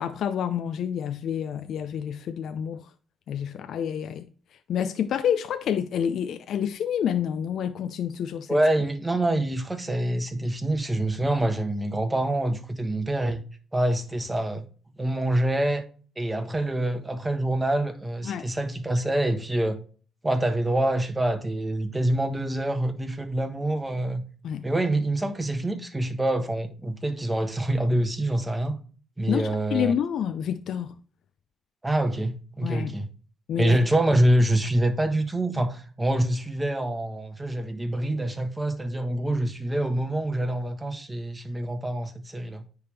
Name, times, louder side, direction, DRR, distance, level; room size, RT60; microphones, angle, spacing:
voice 1, 0.0-2.9 3.3-4.3 4.7-8.6 18.2-18.5 24.4-24.7 29.3-31.0 32.6-32.9 33.5-33.8, left 8 dB, 70° left, 0.4 m, -28 dB
voice 2, 8.5-13.4 13.7-14.7 15.0-15.8 16.2-19.8 20.2-24.2 24.6-28.8 29.2-29.9 31.8-33.1 33.6-42.6, right 1 dB, 10° right, 1.2 m, -26 dB
9.7 x 3.6 x 3.3 m
cardioid pair, 90°, 0 cm